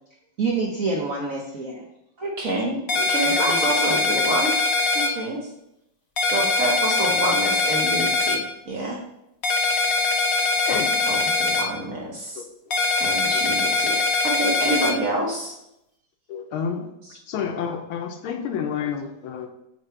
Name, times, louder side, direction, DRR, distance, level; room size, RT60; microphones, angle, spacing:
voice 1, 0.4-1.8 3.3-3.6 3.9-4.3, right 3 dB, 65° right, 1 dB, 0.8 m, -27 dB
voice 2, 2.2-4.5 4.9-5.4 6.3-9.0 11.1-12.4 13.0-14.0 14.2-15.6 17.1-17.2, right 1 dB, 50° right, -2 dB, 1.1 m, -27 dB
sound 1, 2.9-5.1 6.2-8.4 9.4-11.6 12.7-14.9, left 3 dB, 60° left, 0.9 m, -22 dB
voice 3, 12.4-12.8 13.0-13.2 13.6-13.7 16.3-16.9 17.3-19.5, left 7 dB, 75° left, 5 dB, 1.5 m, -30 dB
7.6 x 3.5 x 4.5 m, 0.83 s
omnidirectional pair, 2.4 m